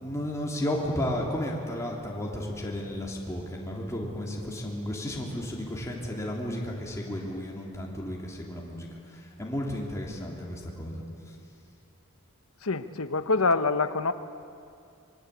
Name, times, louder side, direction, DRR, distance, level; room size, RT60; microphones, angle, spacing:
voice 1, 0.0-11.0, left 1 dB, 15° left, -2 dB, 3.4 m, -33 dB
voice 2, 12.6-14.1, left 3 dB, 70° left, 11 dB, 1.1 m, -25 dB
25.5 x 23.0 x 8.5 m, 2.4 s
head